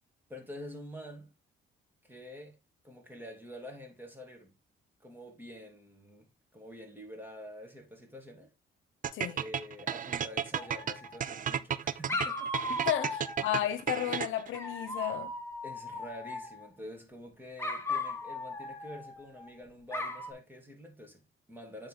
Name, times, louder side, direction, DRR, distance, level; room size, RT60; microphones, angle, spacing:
voice 1, 0.3-1.3 2.0-2.6 2.8-4.5 5.0-8.5 9.3-12.5 15.6-21.9, equal, 10° right, 2.6 m, -47 dB
sound 1, 9.0-14.6, right 8 dB, 45° right, 0.5 m, -33 dB
Dog, 10.6-11.4 12.1-13.7 14.5-16.7 17.6-19.5 19.9-20.3, left 2 dB, 15° left, 1.6 m, -37 dB
voice 2, 12.9-15.3, left 12 dB, 80° left, 0.9 m, -33 dB
9.1 x 3.8 x 3.8 m
cardioid pair, 90°, 20 cm